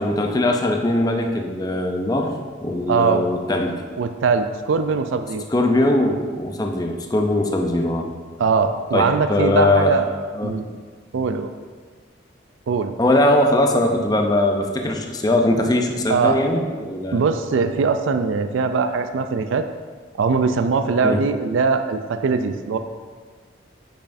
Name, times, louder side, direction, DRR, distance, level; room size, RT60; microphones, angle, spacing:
voice 1, 0.0-2.3 2.6-3.8 5.5-8.1 8.9-10.0 10.3-10.7 13.0-17.2 21.0-21.2, left 1 dB, 20° left, 3 dB, 0.5 m, -20 dB
voice 2, 2.9-3.3 4.0-5.4 8.4-10.2 10.4-10.7 11.1-11.5 12.7-12.9 16.1-16.4 17.1-19.7 20.2-22.8, right 5 dB, 85° right, 8 dB, 0.4 m, -21 dB
8.6 x 5.5 x 2.6 m, 1.5 s
head